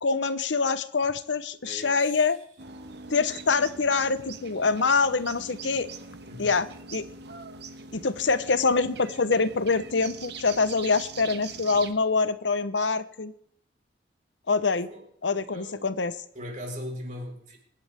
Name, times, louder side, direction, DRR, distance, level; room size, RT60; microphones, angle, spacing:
voice 1, 0.0-2.4 3.1-5.9 6.4-7.1 7.9-13.3 14.5-14.9 15.2-16.1, left 4 dB, 90° left, 13 dB, 0.9 m, -25 dB
voice 2, 1.6-2.2 6.2-6.5 14.9-15.0 15.5-15.9 16.3-17.6, left 1 dB, 45° right, 1 dB, 4.3 m, -39 dB
sound 1, 2.6-11.9, right 4 dB, 65° right, 1.3 m, -42 dB
24.5 x 10.5 x 3.5 m, 0.72 s
head